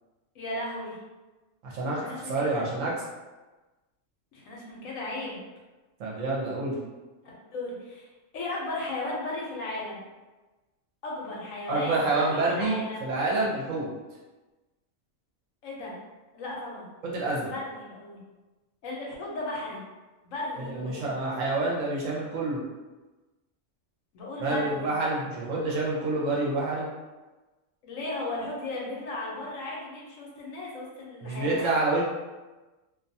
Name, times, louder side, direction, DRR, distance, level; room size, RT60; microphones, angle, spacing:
voice 1, 0.3-1.0 2.0-2.6 4.3-5.4 7.2-8.1 8.3-10.0 11.0-13.1 15.6-15.9 16.3-16.9 17.4-18.2 18.8-19.8 20.2-21.1 24.1-24.9 27.8-31.7, left 2 dB, 70° left, -3 dB, 1.0 m, -35 dB
voice 2, 1.6-2.9 6.0-6.8 11.7-13.9 17.0-17.5 20.7-22.6 24.4-26.9 31.2-32.0, right 2 dB, 70° right, -4 dB, 1.0 m, -28 dB
2.5 x 2.2 x 2.6 m, 1.2 s
omnidirectional pair, 1.5 m